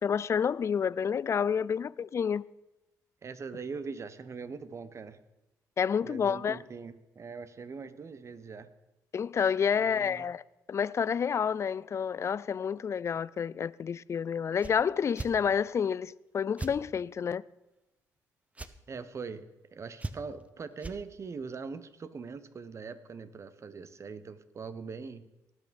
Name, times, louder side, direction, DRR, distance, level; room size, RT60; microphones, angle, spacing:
voice 1, 0.0-2.4 5.8-6.6 9.1-10.4 10.7-17.4, left 7 dB, 40° left, 0.4 m, -29 dB
voice 2, 3.2-5.2 6.0-8.7 9.8-10.3 18.9-25.3, right 5 dB, 40° right, 1.0 m, -42 dB
sound 1, 14.6-14.8 15.1-15.3 16.6-16.8 18.5-18.7 20.0-20.4 20.8-21.0, right 2 dB, 20° right, 0.8 m, -38 dB
18.5 x 6.3 x 5.2 m
supercardioid pair, 70°, 7 cm